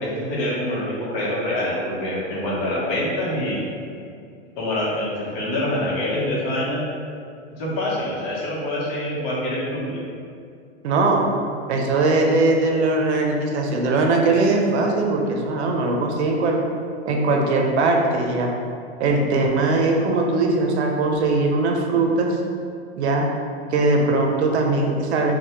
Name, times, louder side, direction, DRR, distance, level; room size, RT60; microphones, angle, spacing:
voice 1, 0.0-3.6 4.6-6.8 7.6-10.0, left 1 dB, 55° left, -5 dB, 0.9 m, -25 dB
voice 2, 10.8-11.3 11.7-16.6 17.1-18.5 19.0-22.4 23.0-23.3 23.7-25.3, right 3 dB, 75° right, 1 dB, 0.5 m, -20 dB
2.2 x 2.1 x 2.9 m, 2.3 s
hypercardioid pair, 130°, 33 cm